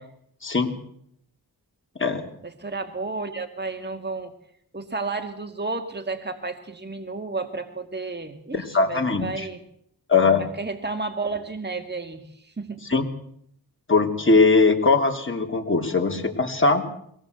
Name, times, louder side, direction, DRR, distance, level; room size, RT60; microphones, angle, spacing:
voice 1, 0.4-0.7 2.0-2.2 8.5-9.4 10.1-10.5 12.9-13.1 13.9-16.8, left 3 dB, 30° left, 2 dB, 3.1 m, -20 dB
voice 2, 2.4-4.3 4.7-9.6 10.6-12.8, right 3 dB, 25° right, 6 dB, 2.1 m, -32 dB
22.5 x 17.5 x 8.0 m, 0.70 s
cardioid pair, 60°, 39 cm